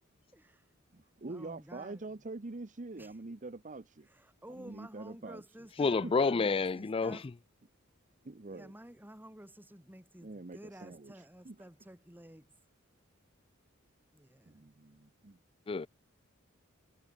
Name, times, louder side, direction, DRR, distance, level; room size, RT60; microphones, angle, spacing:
voice 1, 0.3-0.7 1.3-2.2 3.0-3.2 4.0-7.3 8.5-12.5 14.1-14.7, right 1 dB, 10° right, 3.0 m, -52 dB
voice 2, 0.9-4.1 4.6-5.4 5.8-6.1 8.2-8.7 10.2-11.1 11.4-11.6 14.5-15.4, right 2 dB, 40° right, 0.8 m, -45 dB
voice 3, 5.8-7.2 15.7-15.9, left 4 dB, 25° left, 0.4 m, -29 dB
head